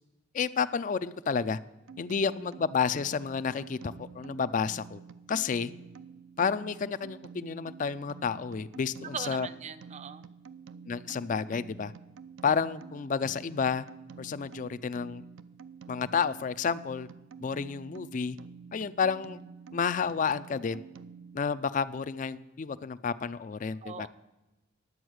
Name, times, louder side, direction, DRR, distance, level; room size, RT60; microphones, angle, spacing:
voice 1, 0.3-1.6 2.0-5.0 5.3-5.7 6.4-9.5 10.9-11.9 12.4-13.9 14.2-15.2 15.9-17.1 17.4-18.4 18.7-19.4 19.7-20.8 21.3-24.1, left 6 dB, 40° left, 14 dB, 0.4 m, -30 dB
sound 1, 1.9-21.4, right 6 dB, 85° right, 0.5 m, -49 dB
voice 2, 9.1-10.2 23.8-24.1, right 6 dB, 35° right, 13 dB, 0.5 m, -40 dB
11.0 x 7.9 x 6.3 m, 1.0 s
head